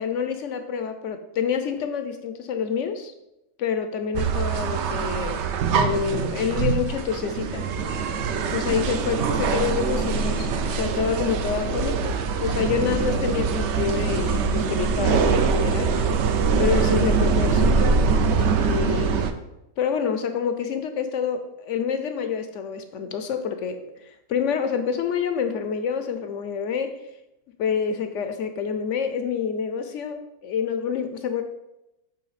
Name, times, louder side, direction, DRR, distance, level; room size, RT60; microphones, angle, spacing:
voice 1, 0.0-3.1 3.6-5.4 5.7-7.7 8.5-15.9 16.6-18.0 18.4-19.3 19.8-27.0 27.6-31.4, left 7 dB, 65° left, 7 dB, 0.8 m, -27 dB
sound 1, 4.1-19.3, right 5 dB, 65° right, 0.7 m, -23 dB
8.4 x 3.4 x 4.0 m, 0.91 s
omnidirectional pair, 1.5 m